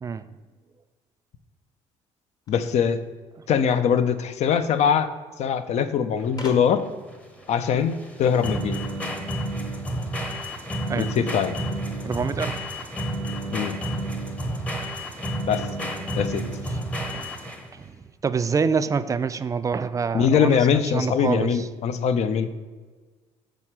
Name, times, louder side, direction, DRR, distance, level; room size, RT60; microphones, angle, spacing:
voice 1, 2.5-3.0 3.5-5.1 5.4-6.8 7.5-8.8 11.0-11.6 13.5-13.8 15.5-15.6 16.2-16.4 20.1-22.5, left 7 dB, 60° left, 11 dB, 0.5 m, -22 dB
sound 1, 2.5-3.9 5.0-5.1 5.3-5.4 6.4-7.0, left 1 dB, 30° left, 1.0 m, -41 dB
sound 2, 6.2-17.8, right 1 dB, 10° left, 0.8 m, -30 dB
voice 2, 12.0-12.6 17.1-17.3 17.7-21.7, right 5 dB, 25° right, 12 dB, 0.3 m, -26 dB
6.3 x 3.3 x 5.9 m, 1.4 s
cardioid pair, 105°, 13 cm